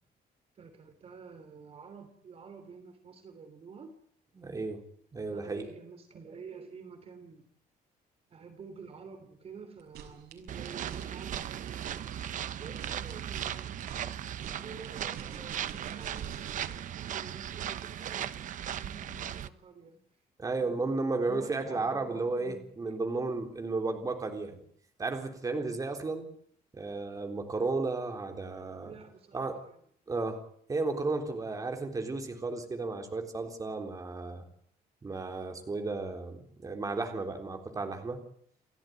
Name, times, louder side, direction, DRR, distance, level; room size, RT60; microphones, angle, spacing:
voice 1, 0.5-3.9 5.3-7.4 8.3-11.8 12.6-13.8 14.5-16.3 17.1-18.4 18.6-20.2 20.6-20.8 21.3-22.6 28.8-29.8, right 5 dB, 35° right, 8 dB, 3.1 m, -49 dB
voice 2, 4.4-4.8 5.1-5.7 17.8-17.9 20.4-24.6 25.0-26.3 26.7-28.9 29.3-29.6 30.1-30.4 30.7-34.4 35.0-38.2, right 3 dB, 20° right, 5 dB, 3.7 m, -33 dB
sound 1, 9.8-16.9, right 8 dB, 75° right, 6.1 m, -48 dB
sound 2, 10.5-19.5, right 10 dB, 55° right, 1.1 m, -37 dB
29.5 x 14.0 x 9.4 m, 0.63 s
cardioid pair, 165°, 16 cm